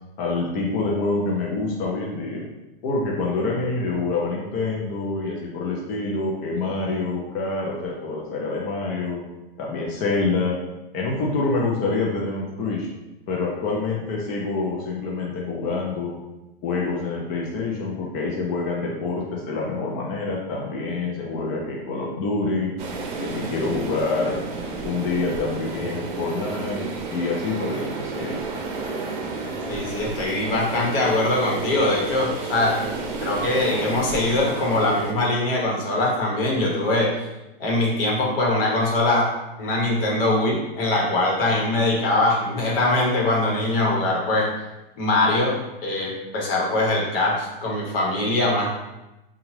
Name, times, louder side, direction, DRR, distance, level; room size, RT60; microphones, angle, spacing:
voice 1, 0.2-2.4 2.8-9.2 9.6-10.6 10.9-12.9 13.3-16.1 16.6-22.7 23.2-24.4 24.8-28.4, left 3 dB, 30° left, -3 dB, 0.4 m, -26 dB
sound 1, 22.8-35.1, right 3 dB, 55° right, 0.6 m, -31 dB
voice 2, 29.7-32.8 33.2-37.1 37.6-39.3 39.6-44.5 45.0-48.7, left 2 dB, 70° left, -2 dB, 1.1 m, -22 dB
2.8 x 2.3 x 3.1 m, 0.99 s
supercardioid pair, 135°, 30 cm